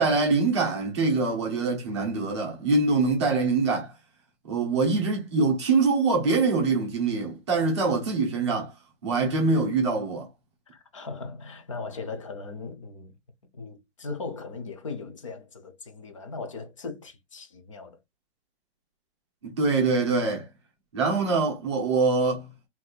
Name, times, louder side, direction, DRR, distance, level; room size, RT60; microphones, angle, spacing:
voice 1, 0.0-3.9 4.5-8.7 9.0-10.3 19.4-20.5 20.9-22.5, right 3 dB, 25° right, 0.8 m, -24 dB
voice 2, 10.7-13.1 13.5-18.0, left 4 dB, 30° left, 0.5 m, -38 dB
4.0 x 2.6 x 2.3 m
hypercardioid pair, 165°, 34 cm